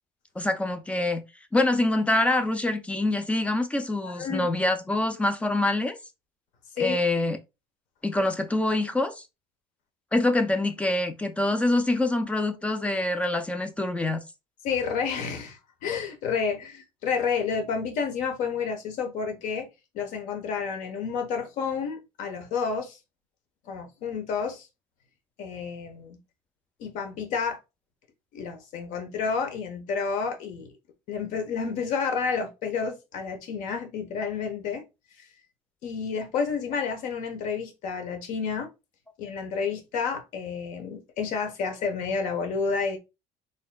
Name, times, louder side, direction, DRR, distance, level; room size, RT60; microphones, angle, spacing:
voice 1, 0.4-1.2 1.5-6.0 6.8-7.4 8.0-9.2 10.1-14.2, left 2 dB, 10° left, 0.3 m, -25 dB
voice 2, 4.0-4.5 6.8-7.0 14.6-19.7 19.9-23.0 23.7-24.7 25.4-26.2 26.8-27.6 28.3-30.7 31.1-34.8 35.8-38.7 39.2-43.0, left 5 dB, 65° left, 1.1 m, -30 dB
4.1 x 3.6 x 2.2 m
cardioid pair, 150°, 14 cm